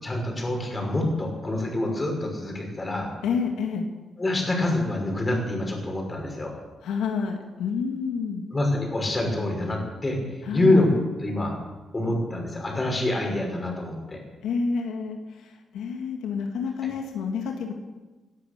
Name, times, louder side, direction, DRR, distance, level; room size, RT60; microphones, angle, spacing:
voice 1, 0.0-3.1 4.2-6.5 8.5-10.9 11.2-11.6 11.9-14.2, left 1 dB, 20° left, 1 dB, 5.7 m, -26 dB
voice 2, 3.2-3.9 6.8-8.5 10.4-10.8 14.4-17.7, left 5 dB, 85° left, 3 dB, 1.9 m, -29 dB
18.0 x 11.5 x 6.7 m, 1.2 s
cardioid pair, 85°, 0 cm